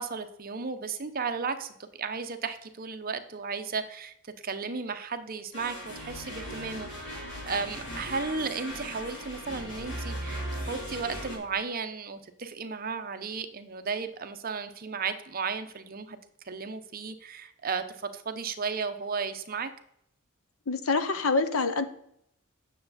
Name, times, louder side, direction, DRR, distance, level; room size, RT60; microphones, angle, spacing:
voice 1, 0.0-4.1 4.4-16.2 16.4-19.7, right 5 dB, 45° right, 0.8 m, -34 dB
sound 1, 5.5-11.4, equal, 55° left, 3.7 m, -38 dB
voice 2, 20.7-21.9, left 3 dB, 80° left, 0.9 m, -26 dB
9.3 x 6.7 x 4.1 m
head